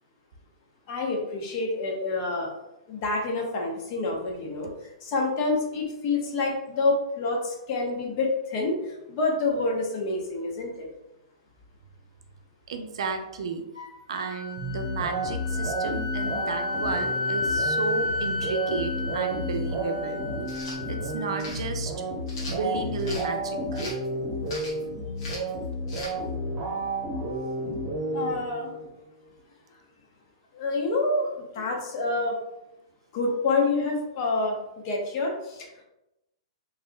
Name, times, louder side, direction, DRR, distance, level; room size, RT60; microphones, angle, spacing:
voice 1, 0.9-2.5 2.9-4.7 5.0-10.9 28.1-28.7 30.5-32.4 33.1-35.8, left 3 dB, 45° left, 0 dB, 0.9 m, -27 dB
voice 2, 12.7-13.6 14.1-20.2 20.9-21.9 22.5-23.8, right 4 dB, 70° right, 6 dB, 0.5 m, -33 dB
Wind instrument woodwind instrument, 13.7-21.5, left 3 dB, 80° left, 1.5 m, -32 dB
sound 1, 14.6-28.9, right 1 dB, 30° right, 0.9 m, -31 dB
sound 2, 20.4-20.8 21.4-21.6 22.3-23.3 23.7-24.1 24.5-24.8 25.2-25.5 25.9-26.1, left 2 dB, 60° left, 1.2 m, -39 dB
3.4 x 3.1 x 2.3 m, 0.93 s
hypercardioid pair, 120°, 3 cm